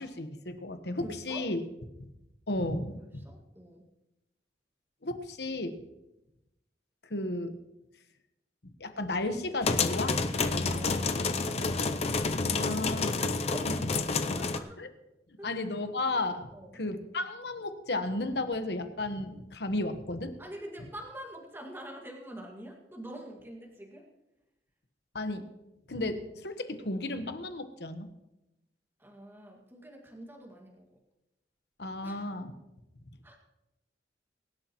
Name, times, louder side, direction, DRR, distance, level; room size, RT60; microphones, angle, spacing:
voice 1, 0.0-1.6 2.5-3.0 5.0-5.8 7.1-7.6 8.8-10.2 10.5-10.9 12.3-13.3 13.8-13.9 14.8-14.9 15.4-16.5 16.7-20.3 25.1-25.4 25.9-28.1 31.8-32.5, left 2 dB, 65° left, 8 dB, 1.2 m, -33 dB
voice 2, 1.0-1.5 3.1-3.9 10.7-11.9 12.9-13.7 14.3-14.8 15.4-15.6 16.5-16.8 20.4-24.1 29.0-30.9 32.0-32.3 33.2-33.4, right 1 dB, 15° right, 0 dB, 1.9 m, -46 dB
sound 1, 9.6-14.6, left 4 dB, 35° left, 0.6 m, -29 dB
23.0 x 11.5 x 3.1 m, 0.94 s
head